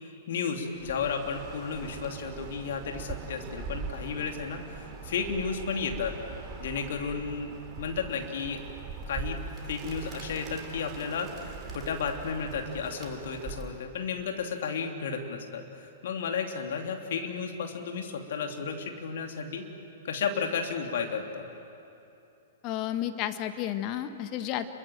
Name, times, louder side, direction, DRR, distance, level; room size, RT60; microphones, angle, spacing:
voice 1, 0.3-4.6 5.0-6.1 6.6-8.6 9.1-9.4 9.7-11.3 11.7-15.6 16.0-19.7 20.0-21.5, left 5 dB, 60° left, 3 dB, 2.9 m, -33 dB
Bird, 0.7-13.9, right 4 dB, 30° right, 3.4 m, -42 dB
voice 2, 22.6-24.7, left 12 dB, 35° left, 9 dB, 1.6 m, -32 dB
28.5 x 23.0 x 7.7 m, 2.8 s
figure-of-eight pair, 110°, 0 cm